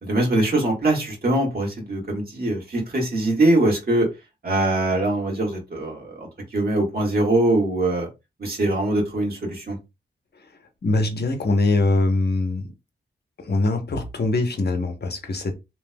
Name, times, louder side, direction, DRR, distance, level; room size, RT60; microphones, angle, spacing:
voice 1, 0.0-4.1 4.4-8.1 8.4-9.8, right 1 dB, 50° right, -1 dB, 1.7 m, -22 dB
voice 2, 10.8-12.6 13.4-15.5, left 2 dB, 55° left, 5 dB, 0.9 m, -22 dB
3.3 x 3.1 x 2.2 m, 0.24 s
cardioid pair, 70°, 21 cm